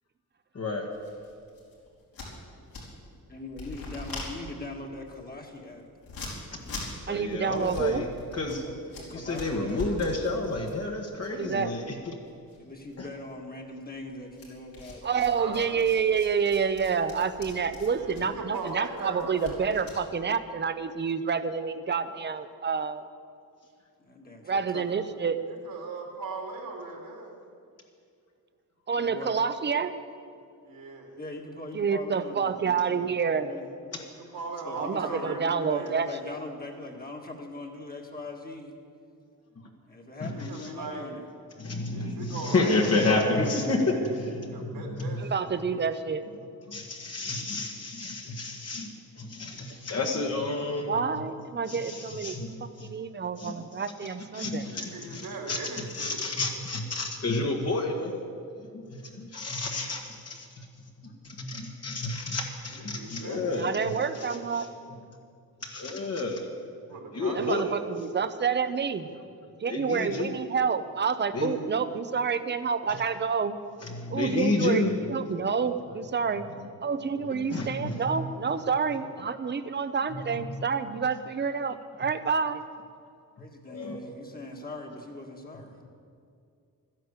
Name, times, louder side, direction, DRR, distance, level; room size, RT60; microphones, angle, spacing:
voice 1, 0.5-0.9 6.5-6.6 7.1-8.1 8.3-8.6 9.1-12.1 40.2-40.3 40.6-40.7 41.6-45.3 46.7-50.9 51.7-52.9 53.4-53.5 54.3-55.6 55.9-58.2 58.7-60.7 61.2-64.3 64.5-64.7 65.6-66.5 67.1-67.7 69.7-70.3 71.3-71.6 72.9-73.0 73.8-74.9 77.3-78.6 80.1-80.6 83.6-84.0, left 2 dB, 45° left, 1 dB, 1.6 m, -30 dB
sound 1, 0.9-3.2 3.5-12.2 12.5-13.3 14.3-20.0, left 3 dB, 75° left, 4.8 m, -42 dB
voice 2, 3.3-5.9 8.7-9.8 12.6-15.6 24.0-25.1 29.0-29.4 31.2-33.7 34.6-38.8 39.9-41.2 83.4-85.8, left 2 dB, 25° left, 1 dB, 1.8 m, -41 dB
voice 3, 7.1-8.0 11.3-11.7 15.0-23.0 24.4-25.4 28.9-29.9 31.7-33.5 34.8-36.1 45.2-46.2 50.9-52.4 52.8-54.6 63.6-64.7 67.3-69.1 69.6-73.6 74.1-74.8 75.1-76.5 76.8-82.6, right 6 dB, 30° right, 11 dB, 0.7 m, -28 dB
voice 4, 15.0-15.8 17.8-19.7 25.5-27.4 30.6-31.1 34.3-36.0 40.1-41.1 41.9-45.9 54.6-56.2 62.7-64.3 66.9-67.8, right 3 dB, 75° right, 1 dB, 3.2 m, -39 dB
13.0 x 10.5 x 8.2 m, 2.3 s
wide cardioid pair, 125°, 35 cm